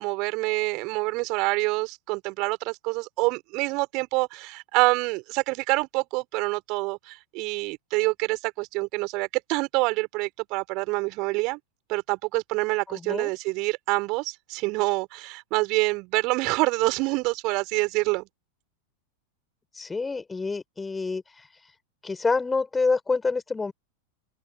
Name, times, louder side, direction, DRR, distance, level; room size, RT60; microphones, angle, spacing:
voice 1, 0.0-11.6 11.9-18.3, right 25 dB, 40° right, 4.8 m, -26 dB
voice 2, 12.9-13.3 19.8-21.2 22.0-23.7, left 4 dB, 10° left, 7.5 m, -27 dB
open air
figure-of-eight pair, 90°, 0 cm